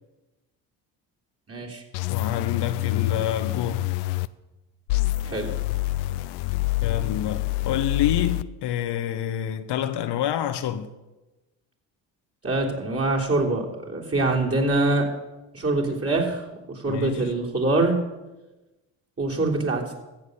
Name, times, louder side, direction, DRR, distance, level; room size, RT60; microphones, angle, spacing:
voice 1, 1.5-1.8 5.2-5.5 12.4-15.1 15.5-18.0 19.2-19.8, right 2 dB, 30° right, 3.5 m, -24 dB
sound 1, 1.9-4.3 4.9-8.4, left 18 dB, 85° left, 0.5 m, -27 dB
voice 2, 2.1-3.9 6.8-11.0 16.9-17.3, left 10 dB, 60° left, 1.0 m, -27 dB
14.5 x 7.7 x 6.8 m
hypercardioid pair, 55°, 45 cm